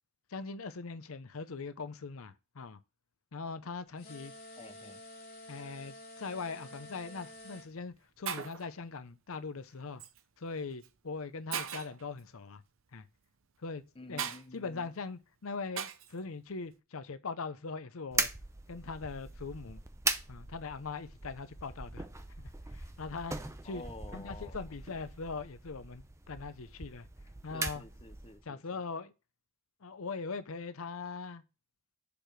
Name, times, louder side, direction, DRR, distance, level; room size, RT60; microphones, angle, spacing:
voice 1, 0.3-2.8 3.3-4.3 5.5-10.0 10.4-12.6 12.9-13.0 13.6-13.8 14.1-14.2 14.5-18.3 18.7-19.8 20.3-22.1 22.4-23.4 23.6-23.8 24.1-27.1 27.4-27.8 28.4-29.1 29.8-31.4, left 4 dB, 75° left, 0.7 m, -41 dB
sound 1, 4.0-7.7, left 1 dB, 45° left, 2.4 m, -50 dB
voice 2, 4.6-5.0 13.9-14.9 23.6-24.8 27.5-28.8, left 2 dB, 25° left, 0.7 m, -50 dB
Shatter, 7.0-7.2 7.9-8.0 8.3-8.7 10.0-10.2 10.8-10.9 11.5-12.0 14.2-14.4 15.8-16.1, right 7 dB, 65° right, 0.7 m, -38 dB
sound 2, 18.1-28.4, right 3 dB, 15° right, 0.5 m, -40 dB
6.9 x 5.1 x 5.8 m
head